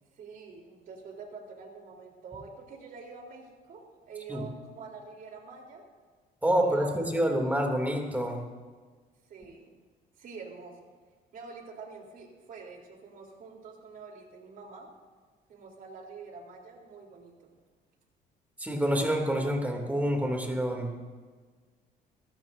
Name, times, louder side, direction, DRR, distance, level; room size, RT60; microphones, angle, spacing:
voice 1, 0.2-5.8 6.6-7.5 9.3-9.8 10.2-10.8 11.3-14.9 15.5-17.3, right 4 dB, 55° right, 1 dB, 3.8 m, -46 dB
voice 2, 6.4-8.4 18.6-21.0, equal, 10° right, 2 dB, 2.8 m, -27 dB
24.0 x 15.0 x 2.7 m, 1.5 s
cardioid pair, 110°, 17 cm